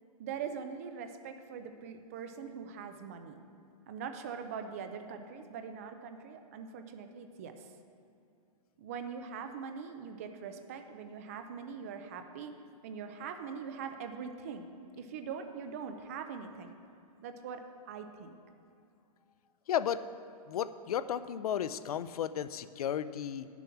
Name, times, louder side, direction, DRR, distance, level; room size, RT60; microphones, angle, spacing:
voice 1, 0.2-3.4 3.9-7.7 8.8-12.6 12.8-14.7 15.0-16.7 17.2-18.4, right 6 dB, 25° right, 7 dB, 0.4 m, -42 dB
voice 2, 19.7-20.1 20.5-23.5, left 9 dB, 75° left, 14 dB, 0.5 m, -34 dB
9.7 x 7.0 x 5.8 m, 2.5 s
hypercardioid pair, 175°, 19 cm